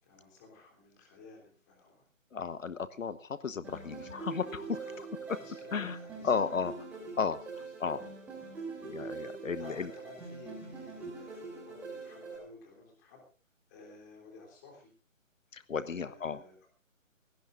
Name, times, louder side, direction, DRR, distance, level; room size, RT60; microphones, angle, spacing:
voice 1, 0.0-2.1 3.8-4.2 4.8-6.7 7.8-8.1 9.1-9.2 9.6-13.2 13.7-14.9 15.8-16.7, left 3 dB, 15° left, 0 dB, 3.3 m, -54 dB
voice 2, 2.3-5.4 5.7-6.0 6.2-6.7 7.2-8.0 8.8-9.9 15.5-16.4, left 5 dB, 75° left, 13 dB, 1.2 m, -34 dB
sound 1, 3.6-12.4, right 4 dB, 5° right, 3.2 m, -43 dB
21.5 x 18.0 x 2.6 m, 0.36 s
hypercardioid pair, 175°, 40 cm